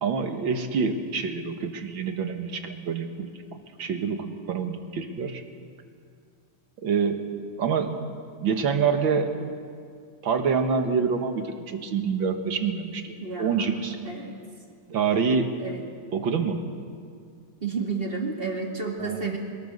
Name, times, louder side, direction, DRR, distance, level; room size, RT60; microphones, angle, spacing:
voice 1, 0.0-5.4 6.8-8.0 8.4-9.5 10.2-14.0 14.9-15.5 16.1-16.6 19.0-19.3, right 5 dB, 75° right, 6 dB, 2.2 m, -27 dB
voice 2, 13.2-14.4 15.6-15.8 17.6-19.4, right 4 dB, 30° right, 2 dB, 2.2 m, -31 dB
22.5 x 22.0 x 6.7 m, 2.2 s
omnidirectional pair, 2.2 m